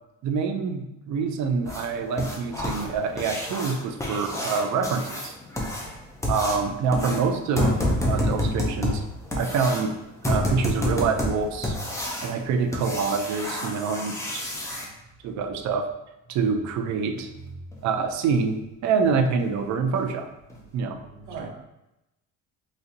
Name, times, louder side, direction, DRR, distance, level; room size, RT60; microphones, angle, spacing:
voice 1, 0.2-5.3 6.3-7.8 8.0-9.0 9.3-9.9 10.2-11.8 12.2-14.4 15.2-15.9 16.3-17.3 17.8-20.3 20.7-21.0 21.4-21.5, right 5 dB, 55° right, 5 dB, 0.5 m, -26 dB
sound 1, 1.6-14.8 17.2-17.3 17.7-17.8 18.3-18.4 18.8-18.9 19.4-19.6 19.9-20.0 20.5-20.6, left 1 dB, 10° left, 0.4 m, -29 dB
voice 2, 17.4-17.9 20.6-21.5, right 4 dB, 75° right, 0 dB, 0.9 m, -41 dB
4.1 x 2.6 x 2.5 m, 0.90 s
cardioid pair, 160°, 33 cm